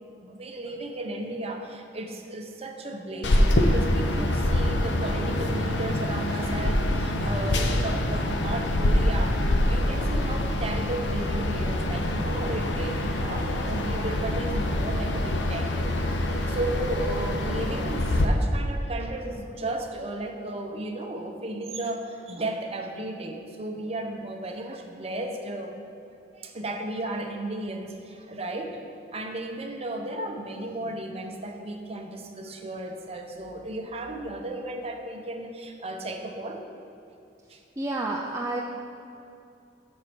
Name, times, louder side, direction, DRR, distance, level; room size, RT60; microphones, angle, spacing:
voice 1, 0.0-9.3 9.7-25.8 26.3-28.8 29.1-36.6 37.5-37.6, right 1 dB, 35° right, 3 dB, 0.8 m, -34 dB
sound 1, 3.2-18.3, left 1 dB, 75° left, 0.7 m, -25 dB
voice 2, 37.8-38.6, right 2 dB, 15° right, -1 dB, 0.4 m, -29 dB
7.2 x 6.3 x 6.0 m, 2.7 s
head